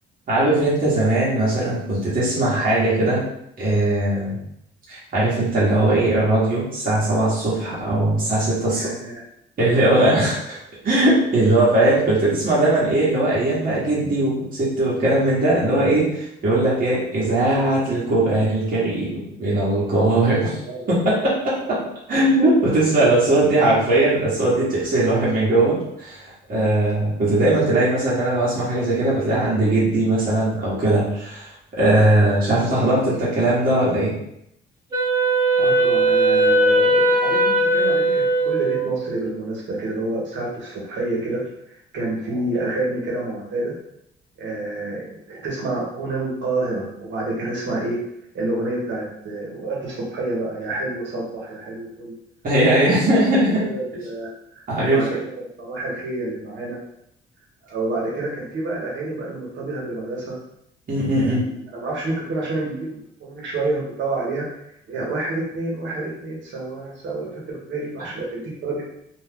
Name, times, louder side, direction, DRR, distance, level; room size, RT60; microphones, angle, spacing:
voice 1, 0.3-3.2 3.6-4.4 4.9-8.9 9.6-10.6 10.8-20.6 20.9-21.8 22.1-34.1 52.4-53.6 54.7-55.1 60.9-61.5, right 1 dB, 45° right, -8 dB, 1.2 m, -19 dB
voice 2, 8.7-9.2 10.1-10.2 16.6-16.7 20.5-20.9 35.5-43.8 44.4-48.0 48.3-52.1 52.9-53.1 53.6-56.8 57.6-60.4 61.1-64.6 64.9-68.9, right 2 dB, 70° right, -3 dB, 1.1 m, -28 dB
Wind instrument woodwind instrument, 34.9-39.2, right 1 dB, 20° right, 1.0 m, -19 dB
2.5 x 2.3 x 3.5 m, 0.76 s
cardioid pair, 90°, 20 cm